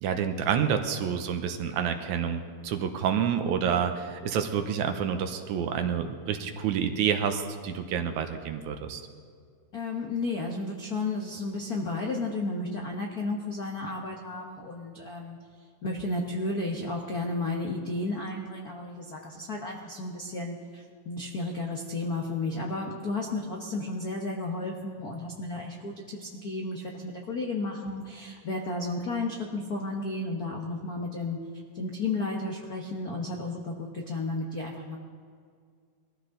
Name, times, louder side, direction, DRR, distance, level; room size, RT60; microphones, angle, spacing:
voice 1, 0.0-9.0, right 7 dB, 75° right, 7 dB, 2.1 m, -28 dB
voice 2, 9.7-15.4 15.8-31.4 31.7-35.0, left 2 dB, 85° left, 0 dB, 0.8 m, -33 dB
21.5 x 14.5 x 3.8 m, 2.1 s
omnidirectional pair, 3.7 m